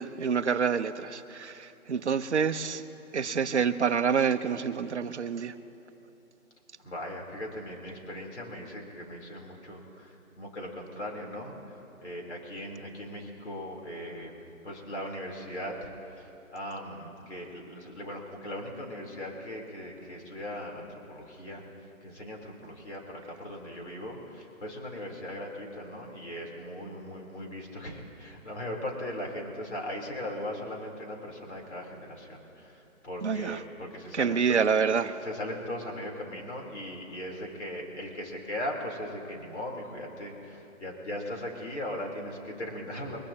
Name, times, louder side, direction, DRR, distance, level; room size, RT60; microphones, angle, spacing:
voice 1, 0.0-2.8 3.1-5.5 33.2-33.6 34.1-35.2, right 6 dB, 50° right, 11 dB, 0.7 m, -27 dB
voice 2, 6.8-21.6 22.0-34.6 35.2-43.3, left 1 dB, 50° left, -1 dB, 3.6 m, -39 dB
23.5 x 16.5 x 2.9 m, 2.9 s
hypercardioid pair, 170°, 43 cm